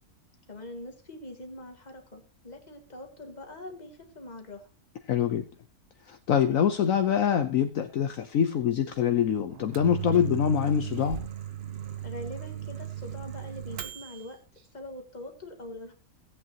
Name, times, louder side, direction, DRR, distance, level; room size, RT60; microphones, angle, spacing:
voice 1, 0.5-4.7 12.0-14.4 14.7-15.9, left 1 dB, 30° left, 3 dB, 1.9 m, -43 dB
voice 2, 5.1-5.4 6.1-11.2, left 8 dB, 65° left, 7 dB, 1.1 m, -25 dB
Microwave oven, 9.5-14.3, right 11 dB, 50° right, 0.9 m, -36 dB
16.5 x 8.4 x 2.9 m, 0.34 s
omnidirectional pair, 1.6 m